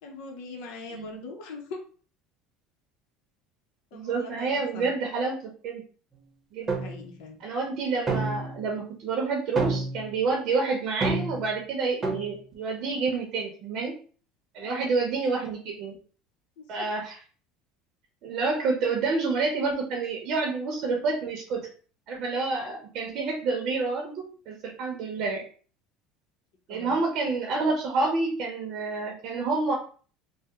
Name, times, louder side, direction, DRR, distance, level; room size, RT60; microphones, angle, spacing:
voice 1, 0.0-1.8 3.9-4.9 6.6-7.4 14.6-15.4 16.6-16.7 26.7-27.0, left 3 dB, 75° left, 2 dB, 0.6 m, -42 dB
voice 2, 3.9-5.4 5.6-5.8 6.5-6.7 7.4-13.9 14.5-16.0 16.7-17.2 18.2-21.7 22.1-25.4 26.7-29.7, right 4 dB, 60° right, 1 dB, 0.7 m, -28 dB
sound 1, 6.7-7.0 8.1-8.7 9.6-10.1 11.0-11.5 12.0-12.3, right 3 dB, 25° right, 0.8 m, -29 dB
3.4 x 2.0 x 2.9 m, 0.41 s
supercardioid pair, 105°, 0 cm